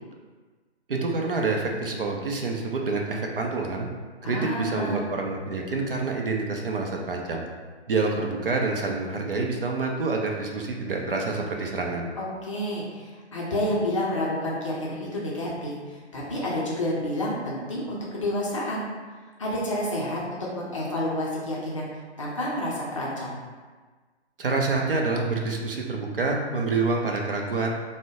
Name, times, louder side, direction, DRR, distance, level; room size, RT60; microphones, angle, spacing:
voice 1, 0.9-3.9 4.2-7.4 7.9-12.1 24.4-27.7, right 3 dB, 55° right, 0 dB, 0.6 m, -27 dB
voice 2, 4.2-5.0 12.2-18.8 19.4-20.2 20.6-21.9 22.2-23.4, left 1 dB, 30° left, -5 dB, 0.5 m, -29 dB
3.6 x 2.1 x 3.6 m, 1.4 s
figure-of-eight pair, 140°, 34 cm